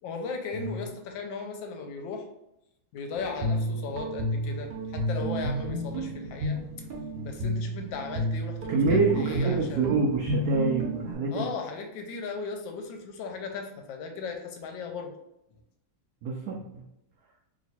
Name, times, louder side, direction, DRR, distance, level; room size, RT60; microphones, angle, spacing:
voice 1, 0.0-2.3 2.9-6.6 7.2-9.8 11.3-15.1, left 4 dB, 75° left, 3 dB, 1.3 m, -37 dB
Guitar, 3.2-11.1, right 1 dB, 60° right, 1.3 m, -31 dB
voice 2, 8.7-11.5 16.2-16.8, right 4 dB, 80° right, -1 dB, 0.8 m, -26 dB
3.1 x 3.0 x 4.2 m, 0.84 s
omnidirectional pair, 2.3 m